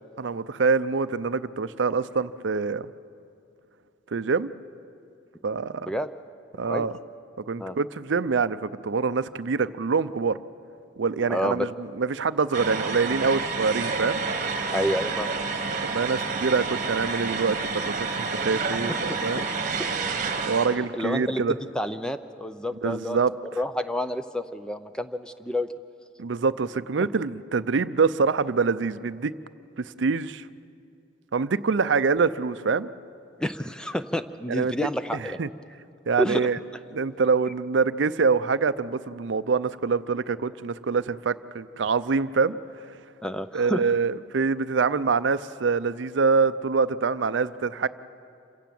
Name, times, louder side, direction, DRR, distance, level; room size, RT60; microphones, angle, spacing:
voice 1, 0.2-2.9 4.1-4.5 5.4-5.9 6.6-6.9 7.5-10.4 11.0-14.2 15.9-19.5 20.4-21.5 22.8-23.3 26.2-29.3 29.8-30.5 31.3-32.9 34.5-34.7 35.4-35.5 36.1-36.6 36.9-42.6 43.5-47.9, right 5 dB, 70° right, 15 dB, 0.5 m, -25 dB
voice 2, 11.3-11.7 14.7-15.3 19.1-19.5 19.7-19.9 20.9-23.2 23.6-25.7 33.4-35.4 36.2-36.5 43.2-43.8, equal, 5° left, 10 dB, 0.5 m, -29 dB
sound 1, 12.5-20.8, right 4 dB, 40° right, 1.3 m, -29 dB
27.0 x 16.5 x 7.6 m, 2.5 s
head